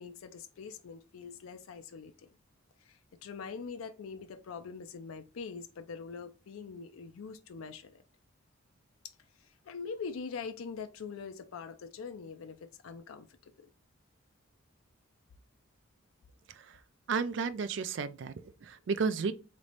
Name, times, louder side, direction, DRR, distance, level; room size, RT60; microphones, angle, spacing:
voice 1, 0.0-2.3 2.8-8.0 9.0-13.7, left 5 dB, 90° left, 0.4 m, -43 dB
voice 2, 16.5-16.8 17.1-19.3, right 5 dB, 60° right, 0.4 m, -33 dB
3.2 x 3.1 x 4.0 m
head